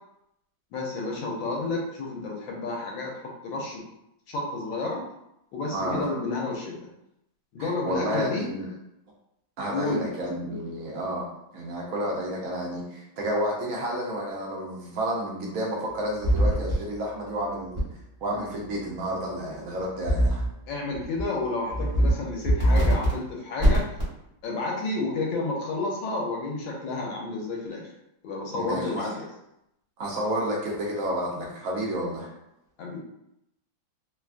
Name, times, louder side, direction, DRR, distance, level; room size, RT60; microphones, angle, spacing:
voice 1, 0.7-3.1 3.4-3.8 4.3-5.0 5.5-6.9 7.5-8.5 9.7-10.1 20.7-23.8 24.4-27.9 28.2-29.3 32.8-33.0, left 3 dB, 80° left, -1 dB, 1.4 m, -30 dB
voice 2, 5.7-6.1 7.6-8.7 9.6-17.8 18.2-20.4 28.5-29.0 30.0-32.3, equal, 75° right, -2 dB, 0.7 m, -31 dB
sound 1, 16.2-16.7 17.8-17.9 20.1-20.5 20.9-21.2 21.7-22.1 22.4-23.1 23.6-24.0, equal, 30° right, 0.6 m, -22 dB
3.3 x 2.2 x 2.4 m, 0.82 s
omnidirectional pair, 2.1 m